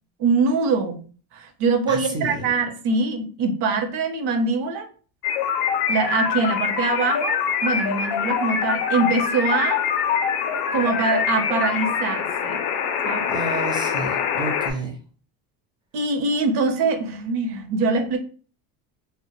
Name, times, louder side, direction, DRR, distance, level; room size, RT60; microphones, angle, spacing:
voice 1, 0.2-1.0 1.3-4.9 5.9-9.8 10.7-12.6 13.0-13.3 15.9-18.2, right 4 dB, 60° right, 6 dB, 0.7 m, -23 dB
voice 2, 1.9-2.5 13.3-15.0, right 2 dB, 10° right, 2 dB, 0.3 m, -30 dB
sound 1, 5.2-14.7, left 7 dB, 60° left, 0.5 m, -24 dB
2.1 x 2.1 x 2.9 m, 0.39 s
supercardioid pair, 120°, 45 cm